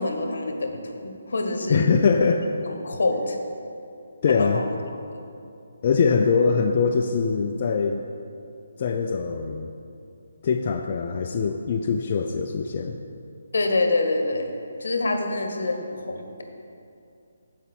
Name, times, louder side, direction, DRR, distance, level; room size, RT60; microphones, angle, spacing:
voice 1, 0.0-1.9 2.6-3.4 4.3-4.6 5.1-5.2 13.5-14.5 14.8-16.4, left 2 dB, 70° left, 4 dB, 1.3 m, -26 dB
voice 2, 1.7-2.5 4.2-4.6 5.8-8.0 8.8-9.7 10.4-13.0, left 5 dB, 40° left, 3 dB, 0.4 m, -22 dB
14.0 x 5.2 x 4.5 m, 2.6 s
hypercardioid pair, 160°, 0 cm